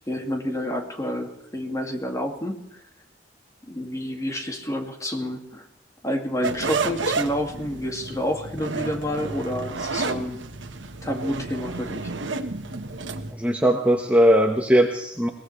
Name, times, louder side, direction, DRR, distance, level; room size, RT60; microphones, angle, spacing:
voice 1, 0.1-2.6 3.7-5.6 6.0-10.4 11.0-12.1, equal, 20° left, 3 dB, 2.3 m, -29 dB
sound 1, 6.4-13.3, right 3 dB, 90° right, 1.4 m, -31 dB
voice 2, 13.3-15.3, equal, 10° right, 2 dB, 1.3 m, -19 dB
22.0 x 18.5 x 3.3 m, 0.80 s
head